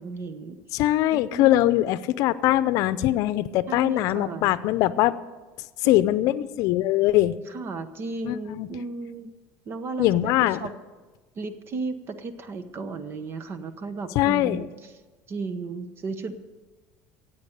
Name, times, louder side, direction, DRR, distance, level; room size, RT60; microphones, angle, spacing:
voice 1, 0.0-0.6 1.1-1.6 3.7-4.5 5.8-6.0 7.5-9.3 9.7-10.3 10.6-10.7 11.4-14.9 15.3-16.4, right 3 dB, 40° right, 11 dB, 1.0 m, -34 dB
voice 2, 0.7-5.1 5.8-7.3 8.2-8.7 10.0-10.6 14.1-14.7, left 14 dB, 65° left, 15 dB, 0.6 m, -22 dB
15.5 x 8.5 x 6.6 m, 1.3 s
cardioid pair, 125°, 6 cm